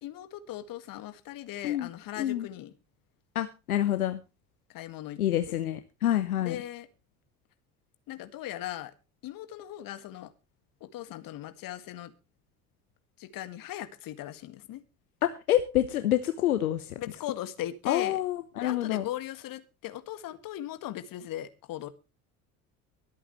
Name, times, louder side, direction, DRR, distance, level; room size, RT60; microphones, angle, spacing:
voice 1, 0.0-2.7 4.7-5.2 5.5-5.6 6.4-6.9 8.1-8.9 9.2-10.3 10.8-12.1 13.2-14.8 17.0-18.2 18.6-21.9, left 13 dB, 50° left, 11 dB, 1.9 m, -39 dB
voice 2, 3.3-4.2 5.2-6.6 15.2-16.8 17.9-19.0, left 12 dB, 75° left, 10 dB, 1.0 m, -27 dB
23.5 x 8.5 x 3.1 m, 0.29 s
figure-of-eight pair, 60°, 44 cm